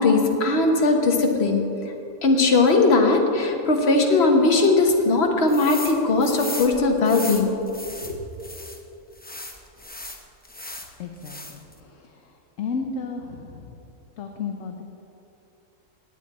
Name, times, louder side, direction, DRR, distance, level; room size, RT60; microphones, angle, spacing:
voice 1, 0.0-1.6 2.2-7.5 8.0-8.2, left 3 dB, 45° left, 2 dB, 1.3 m, -19 dB
sound 1, 5.5-6.0 6.2-8.8 9.2-10.9 11.2-11.7, left 1 dB, 15° left, 0.4 m, -36 dB
voice 2, 11.0-12.3 12.6-13.7 14.2-14.8, left 5 dB, 60° left, 3 dB, 1.0 m, -33 dB
17.0 x 8.9 x 4.2 m, 2.9 s
omnidirectional pair, 1.7 m